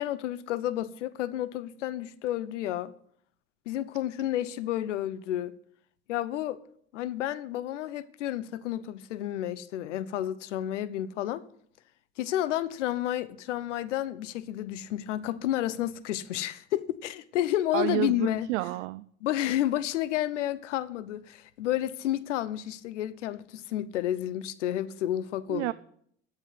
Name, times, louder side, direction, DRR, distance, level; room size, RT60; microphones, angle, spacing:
voice 1, 0.0-2.9 3.7-5.5 6.1-6.6 6.9-11.4 12.2-18.5 19.2-25.7, left 13 dB, 80° left, 0.7 m, -31 dB
voice 2, 17.7-19.1 25.5-25.7, right 18 dB, 75° right, 0.5 m, -30 dB
10.5 x 7.1 x 7.9 m
hypercardioid pair, 60°, 36 cm